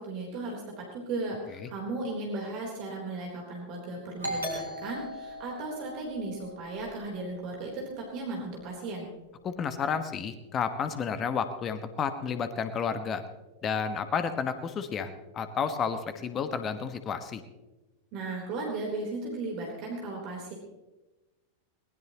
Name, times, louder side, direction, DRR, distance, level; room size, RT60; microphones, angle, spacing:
voice 1, 0.0-9.1 18.1-20.5, right 2 dB, 40° right, -1 dB, 3.7 m, -36 dB
Doorbell, 4.2-7.6, equal, 85° right, 4.5 m, -38 dB
voice 2, 9.4-13.2 13.6-17.4, left 6 dB, 25° left, 9 dB, 1.4 m, -31 dB
22.0 x 19.5 x 3.0 m, 1.1 s
figure-of-eight pair, 90°, 0 cm